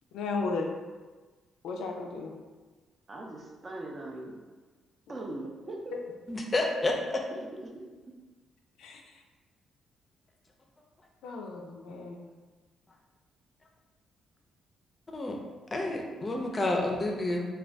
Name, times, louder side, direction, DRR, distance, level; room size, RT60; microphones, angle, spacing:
voice 1, 0.1-0.7 1.6-2.3 8.8-9.0 11.2-12.3, left 3 dB, 85° left, 2 dB, 0.3 m, -34 dB
voice 2, 3.1-4.4 5.1-5.9 7.5-7.7 8.0-8.1, right 2 dB, 35° right, 0 dB, 0.5 m, -40 dB
voice 3, 6.3-7.2 15.1-15.4 15.7-17.4, left 2 dB, 25° left, 1 dB, 0.5 m, -29 dB
2.5 x 2.2 x 3.3 m, 1.3 s
cardioid pair, 90°, 0 cm